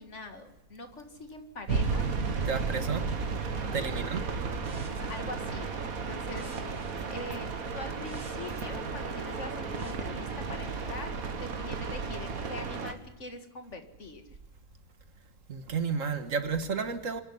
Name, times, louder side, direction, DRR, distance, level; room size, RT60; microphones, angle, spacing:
voice 1, 0.0-2.1 3.5-4.0 4.9-11.1 11.4-14.2, left 2 dB, 55° left, 2.2 m, -43 dB
sound 1, 1.7-12.9, right 4 dB, 85° right, 2.0 m, -34 dB
voice 2, 2.5-3.1 3.7-4.3 15.5-17.2, right 5 dB, 65° right, 1.8 m, -31 dB
sound 2, 3.5-9.9, right 2 dB, 35° right, 6.7 m, -47 dB
25.0 x 11.0 x 9.8 m
omnidirectional pair, 1.5 m